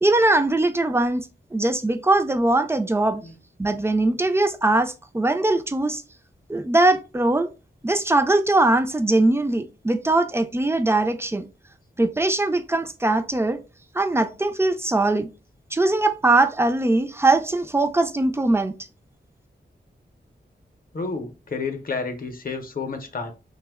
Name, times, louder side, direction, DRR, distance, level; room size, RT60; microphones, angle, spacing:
voice 1, 0.0-3.2 3.6-6.0 6.5-7.5 7.8-11.5 12.0-13.6 13.9-15.3 15.7-18.7, right 2 dB, 15° right, 0.4 m, -21 dB
voice 2, 20.9-23.3, left 4 dB, 50° left, 0.7 m, -30 dB
2.9 x 2.1 x 3.4 m
wide cardioid pair, 65°, 19 cm